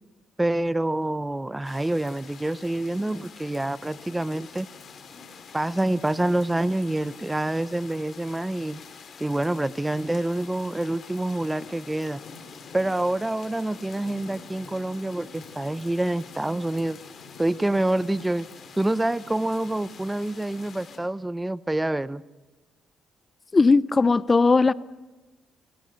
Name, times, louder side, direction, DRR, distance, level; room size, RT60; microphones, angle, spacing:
voice 1, 0.4-4.7 5.5-8.8 9.2-12.2 12.7-17.0 17.4-18.5 18.8-22.2, right 1 dB, 10° right, 17 dB, 0.8 m, -27 dB
sound 1, 1.6-21.0, left 5 dB, 55° left, 4.7 m, -46 dB
voice 2, 23.5-24.7, left 4 dB, 30° left, 18 dB, 0.8 m, -18 dB
29.5 x 25.5 x 6.6 m, 1.2 s
cardioid pair, 90°, 0 cm